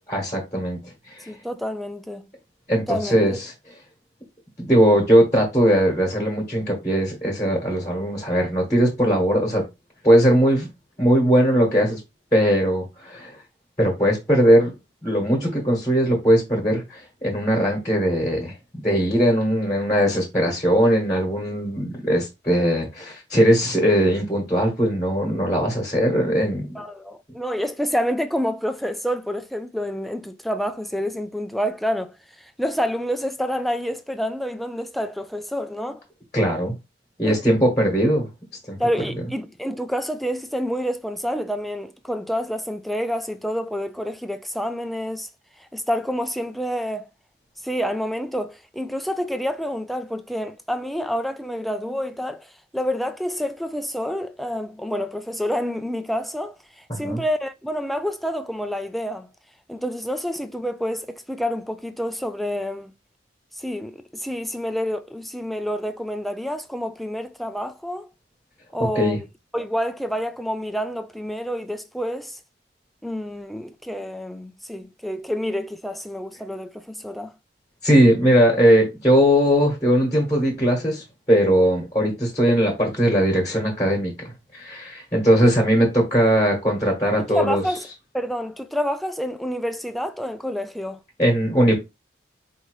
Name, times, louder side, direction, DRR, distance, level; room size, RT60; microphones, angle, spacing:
voice 1, 0.1-0.8 1.1-1.3 2.7-3.5 4.6-9.6 10.0-10.7 11.0-12.0 12.3-13.4 13.8-14.7 15.0-18.5 18.8-26.8 36.3-36.7 37.2-38.3 38.7-38.8 56.9-57.2 68.9-69.2 77.8-84.1 84.5-87.6 91.2-91.7, equal, 20° left, 1.2 m, -19 dB
voice 2, 1.3-2.3 2.9-3.4 26.7-36.0 37.2-37.4 38.8-45.3 45.6-47.1 47.6-59.3 59.7-62.9 63.5-68.1 68.7-69.3 69.5-72.4 73.0-77.3 87.2-87.9 88.1-91.0, equal, ahead, 0.3 m, -28 dB
4.9 x 2.7 x 3.1 m
head